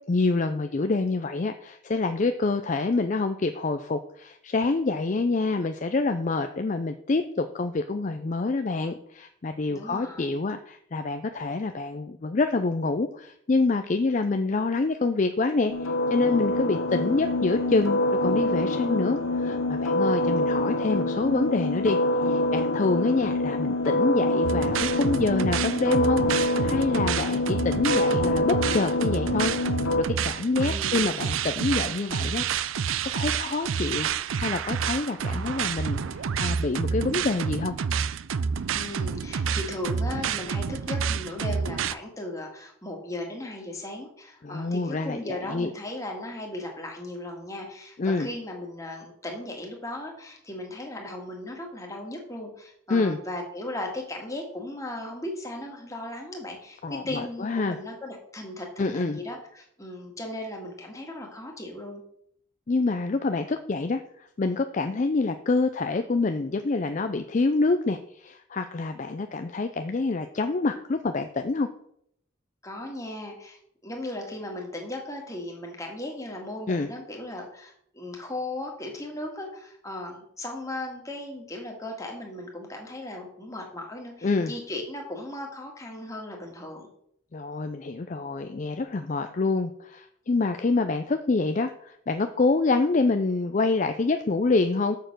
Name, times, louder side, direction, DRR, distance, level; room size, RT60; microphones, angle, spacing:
voice 1, 0.1-22.0 22.2-29.5 30.0-32.4 33.0-37.8 44.4-45.7 48.0-48.3 52.9-53.2 56.8-57.8 58.8-59.2 62.7-71.7 76.7-76.9 84.2-84.5 87.3-94.9, left 3 dB, 35° left, 8 dB, 0.4 m, -26 dB
voice 2, 9.7-10.3 30.6-31.1 38.7-62.0 72.6-86.9, left 1 dB, 15° left, 1 dB, 1.9 m, -37 dB
sound 1, 15.7-30.0, left 1 dB, 85° left, 0.9 m, -26 dB
sound 2, 24.4-41.9, right 6 dB, 80° right, 0.4 m, -29 dB
7.0 x 6.6 x 6.1 m, 0.70 s
head